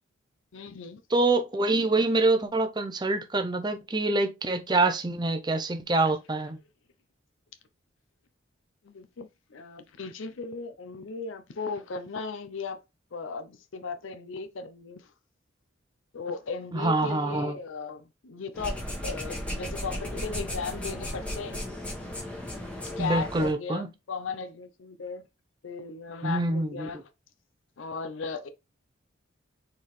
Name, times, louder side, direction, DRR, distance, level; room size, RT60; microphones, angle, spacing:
voice 1, 0.5-1.0 6.0-6.1 8.8-12.8 13.1-15.1 16.1-21.6 23.0-25.2 25.6-27.0 27.8-28.5, left 4 dB, 75° left, 0.6 m, -37 dB
voice 2, 1.1-6.6 16.7-17.5 23.0-23.9 26.2-26.9, right 2 dB, 20° right, 0.5 m, -25 dB
sound 1, 18.5-23.5, left 1 dB, 5° left, 1.4 m, -35 dB
4.5 x 3.6 x 3.2 m
head